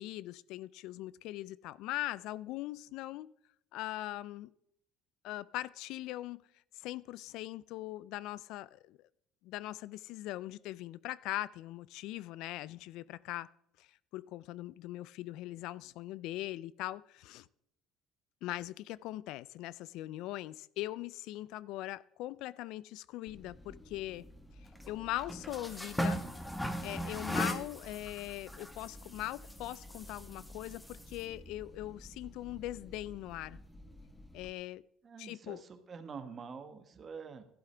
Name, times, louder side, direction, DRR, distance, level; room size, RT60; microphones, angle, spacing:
voice 1, 0.0-3.3 3.7-4.5 5.2-6.4 6.7-9.0 9.4-13.5 13.8-13.9 14.1-17.5 18.4-24.3 24.9-26.2 26.8-33.6 34.3-34.8 35.2-35.6, left 16 dB, 75° left, 0.3 m, -41 dB
sound 1, 23.3-34.5, equal, 5° left, 1.1 m, -41 dB
voice 2, 35.0-37.5, right 5 dB, 35° right, 1.3 m, -46 dB
12.0 x 11.5 x 3.3 m
cardioid pair, 100°, 0 cm